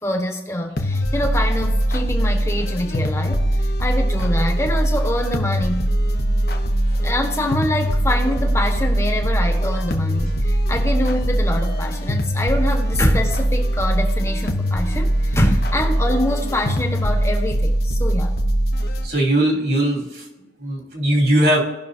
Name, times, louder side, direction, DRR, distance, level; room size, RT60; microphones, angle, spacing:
voice 1, 0.0-5.8 6.9-18.3, left 1 dB, 15° left, 3 dB, 1.3 m, -25 dB
sound 1, 0.8-19.1, right 1 dB, 55° left, 1.0 m, -21 dB
voice 2, 19.0-20.2 20.6-21.6, right 1 dB, 55° right, -1 dB, 3.1 m, -19 dB
18.0 x 6.1 x 2.7 m, 1.1 s
head